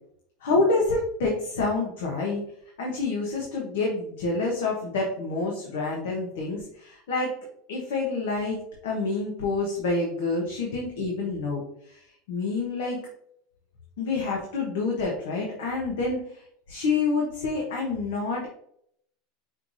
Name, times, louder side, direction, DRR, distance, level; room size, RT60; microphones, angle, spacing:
voice 1, 0.4-2.4 2.8-7.3 7.7-13.0 14.0-18.5, left 3 dB, 80° left, -1 dB, 1.1 m, -28 dB
5.7 x 3.2 x 2.6 m, 0.70 s
supercardioid pair, 110°, 0 cm